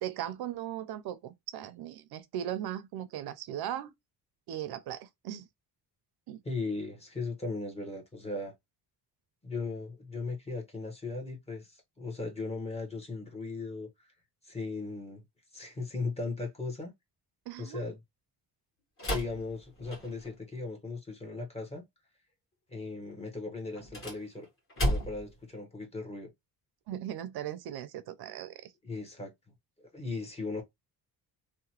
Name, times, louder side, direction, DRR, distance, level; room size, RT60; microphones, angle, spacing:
voice 1, 0.0-3.9 4.5-5.5 6.3-6.4 17.5-17.8 26.9-28.7, right 11 dB, 70° right, 0.5 m, -38 dB
voice 2, 6.4-8.5 9.4-13.9 14.4-15.2 15.5-16.9 17.6-18.0 19.1-21.8 22.7-24.5 24.8-26.3 28.8-29.3 29.9-30.6, left 3 dB, 15° left, 0.8 m, -37 dB
sound 1, 19.0-20.4 23.7-25.4, equal, 35° left, 1.5 m, -33 dB
2.8 x 2.1 x 2.8 m
cardioid pair, 160°, 39 cm